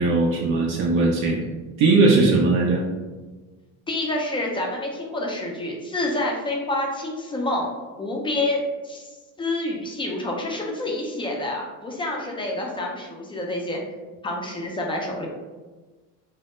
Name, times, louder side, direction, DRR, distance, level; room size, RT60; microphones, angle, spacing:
voice 1, 0.0-1.4 1.8-2.8, right 3 dB, 55° right, -2 dB, 0.5 m, -19 dB
voice 2, 3.9-7.7 8.0-13.8 14.2-15.3, left 1 dB, 15° left, -1 dB, 0.4 m, -28 dB
2.1 x 2.1 x 2.9 m, 1.3 s
supercardioid pair, 90°, 39 cm